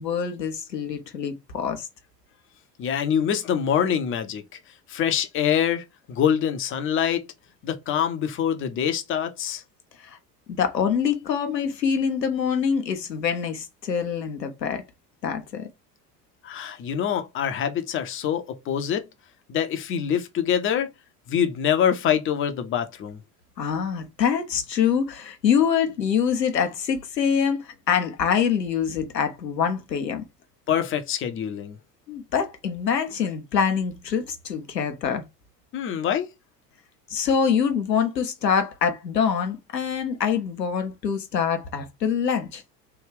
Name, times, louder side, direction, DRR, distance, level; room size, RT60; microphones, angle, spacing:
voice 1, 0.0-1.9 10.0-10.2 10.6-14.8 15.2-15.7 23.6-30.2 32.1-35.2 37.1-42.6, left 7 dB, 85° left, 0.7 m, -25 dB
voice 2, 2.8-4.4 4.9-7.2 7.6-9.6 16.4-19.0 19.5-20.9 21.3-23.2 30.7-31.8 35.7-36.3, left 8 dB, 25° left, 0.5 m, -25 dB
3.3 x 2.3 x 3.3 m
figure-of-eight pair, 70°, 48 cm